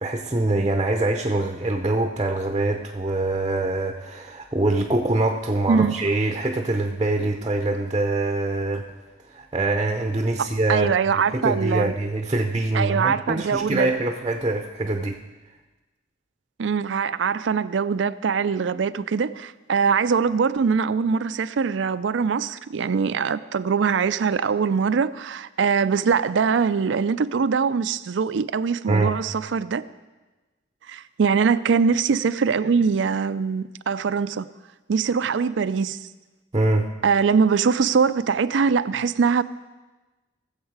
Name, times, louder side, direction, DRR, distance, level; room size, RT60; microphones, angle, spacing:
voice 1, 0.0-8.8 9.3-10.9 11.3-15.2 28.9-29.2 36.5-36.9, right 2 dB, 25° right, 0.7 m, -24 dB
voice 2, 5.7-6.1 10.4-12.0 12.7-13.9 16.6-29.8 30.9-34.5 34.9-36.1 37.0-39.4, right 6 dB, 80° right, 0.4 m, -22 dB
19.0 x 7.4 x 4.7 m
head